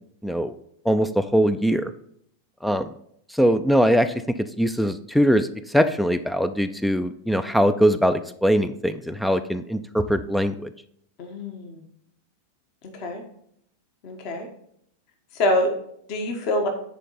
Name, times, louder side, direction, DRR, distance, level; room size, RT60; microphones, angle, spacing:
voice 1, 0.2-0.5 0.9-1.9 2.6-2.9 3.3-10.7, equal, ahead, 11 dB, 0.4 m, -22 dB
voice 2, 11.2-11.8 12.8-13.2 14.0-14.5 15.3-15.7 16.1-16.7, left 1 dB, 45° left, 4 dB, 1.3 m, -25 dB
10.0 x 4.6 x 4.2 m, 0.70 s
figure-of-eight pair, 90°, 0 cm